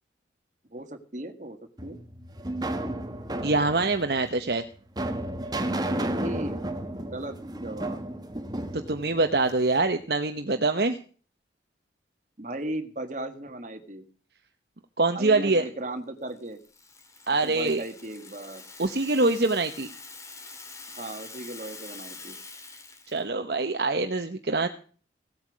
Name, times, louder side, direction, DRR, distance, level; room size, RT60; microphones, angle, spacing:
voice 1, 0.7-2.0 5.8-6.7 7.0-8.0 12.4-14.1 15.1-16.6 17.4-18.6 21.0-22.4, right 1 dB, 45° right, 8 dB, 1.7 m, -37 dB
sound 1, 1.8-9.9, right 1 dB, 20° right, 1.4 m, -33 dB
voice 2, 3.4-4.6 8.7-11.0 15.0-15.6 17.3-17.8 18.8-19.9 23.1-24.7, right 3 dB, 60° right, 7 dB, 1.0 m, -24 dB
Rattle (instrument), 16.3-23.2, left 3 dB, 15° left, 2.2 m, -45 dB
17.0 x 8.8 x 6.2 m, 0.41 s
head